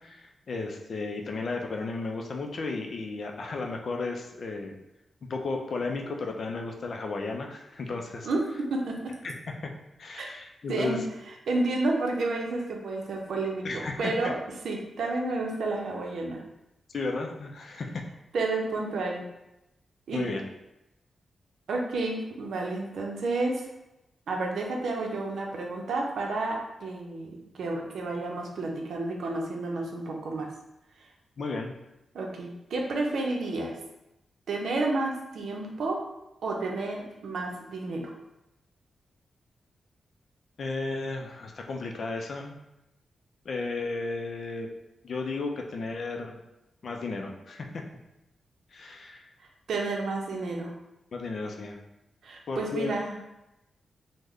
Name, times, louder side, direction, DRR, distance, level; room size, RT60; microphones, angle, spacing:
voice 1, 0.0-4.8 5.2-8.3 9.2-9.7 10.0-11.0 13.6-14.3 16.9-18.0 20.1-20.4 31.4-31.7 40.6-42.6 43.5-44.7 45.0-46.4 46.8-47.8 48.7-49.2 51.1-51.8 52.5-52.9, left 3 dB, 55° left, 2 dB, 0.4 m, -34 dB
voice 2, 8.2-9.2 10.2-10.3 10.7-11.0 11.5-14.3 14.6-16.4 18.3-19.2 20.1-20.3 21.7-23.7 24.3-30.5 32.1-33.8 34.5-36.0 36.4-38.1 49.7-50.7 52.2-53.2, right 2 dB, 80° right, 0 dB, 0.6 m, -30 dB
3.2 x 2.1 x 3.6 m, 0.91 s
wide cardioid pair, 120°, 0 cm